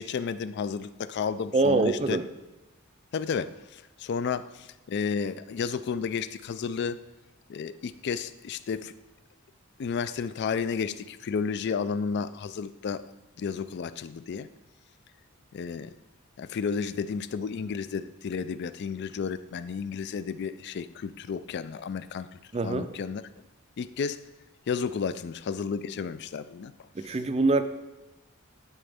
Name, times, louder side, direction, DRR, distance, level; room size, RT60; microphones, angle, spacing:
voice 1, 0.0-2.2 3.1-7.0 7.5-8.9 9.8-13.1 13.4-14.5 15.5-15.9 16.4-22.3 22.6-23.2 23.8-24.2 24.7-26.7, left 6 dB, 50° left, 14 dB, 0.3 m, -32 dB
voice 2, 1.5-2.3 22.5-22.9 26.9-27.6, right 3 dB, 30° right, 10 dB, 0.4 m, -24 dB
12.5 x 4.2 x 3.5 m, 1.1 s
head